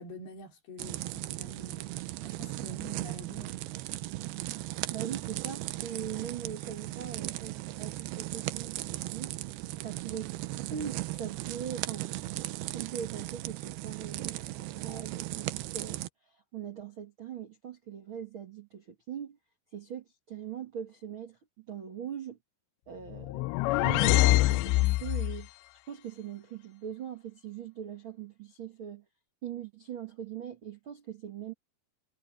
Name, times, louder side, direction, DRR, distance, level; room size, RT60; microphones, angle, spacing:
voice 1, 0.0-1.9 2.2-3.6, equal, 65° left, 5.6 m, -46 dB
sound 1, 0.8-16.1, right 17 dB, 75° right, 2.6 m, -37 dB
voice 2, 4.6-9.3 9.8-10.4 10.7-12.1 12.7-19.4 19.7-22.4 22.9-25.5 25.9-29.0 29.4-31.5, right 8 dB, 50° right, 1.5 m, -41 dB
sound 2, 23.1-25.4, left 20 dB, 85° left, 2.7 m, -25 dB
omnidirectional pair, 5.0 m